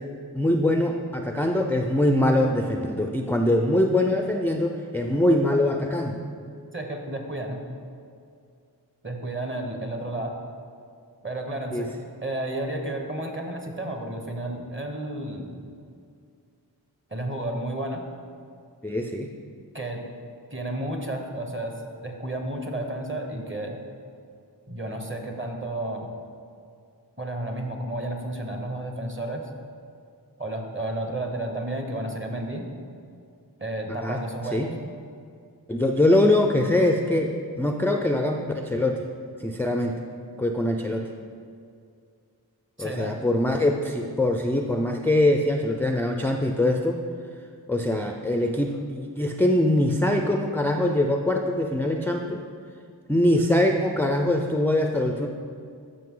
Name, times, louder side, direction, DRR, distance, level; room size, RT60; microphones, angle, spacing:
voice 1, 0.3-6.2 11.7-11.9 18.8-19.3 34.0-34.2 34.5-34.7 35.7-39.0 39.4-40.0 40.4-41.1 42.8-47.0 47.7-52.4 53.1-55.3, left 1 dB, 5° left, 3 dB, 0.4 m, -23 dB
voice 2, 6.7-7.6 9.0-10.4 11.2-11.9 12.2-15.6 17.1-18.0 19.7-20.0 20.5-21.7 22.0-23.8 24.7-26.1 27.2-29.5 30.4-32.6 33.6-34.7 42.8-43.2, right 1 dB, 30° right, 3 dB, 1.2 m, -32 dB
13.5 x 5.5 x 3.8 m, 2.3 s
wide cardioid pair, 55°, 41 cm